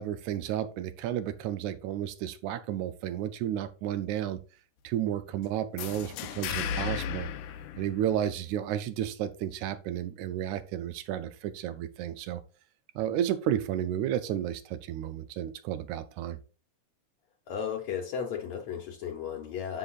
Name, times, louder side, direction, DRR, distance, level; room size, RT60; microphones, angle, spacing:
voice 1, 0.0-4.4 4.8-7.3 7.8-12.4 12.9-16.4, right 11 dB, 80° right, 1.8 m, -32 dB
sound 1, 5.8-8.5, left 8 dB, 85° left, 2.2 m, -35 dB
voice 2, 17.5-19.8, left 7 dB, 70° left, 2.0 m, -34 dB
9.9 x 6.8 x 2.4 m
omnidirectional pair, 3.5 m